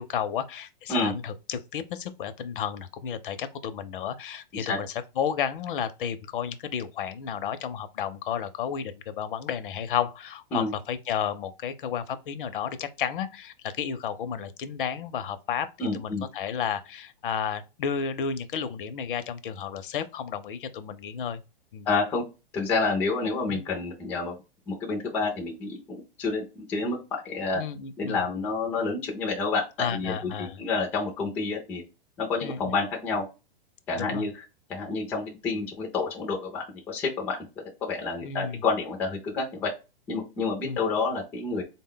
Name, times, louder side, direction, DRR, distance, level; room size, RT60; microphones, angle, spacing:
voice 1, 0.0-4.9 5.2-21.4 21.7-21.9 23.5-23.6 27.5-28.2 29.8-30.6 32.4-32.7 33.9-34.2 38.2-38.6 40.6-40.8, left 8 dB, 60° left, 0.6 m, -32 dB
voice 2, 15.8-16.2 21.9-22.2 22.5-24.4 24.7-27.6 28.0-31.8 32.2-33.3 33.9-34.4 34.7-37.4 37.8-39.7 40.1-41.6, left 4 dB, 5° left, 0.3 m, -29 dB
3.8 x 2.2 x 3.7 m
hypercardioid pair, 150°, 29 cm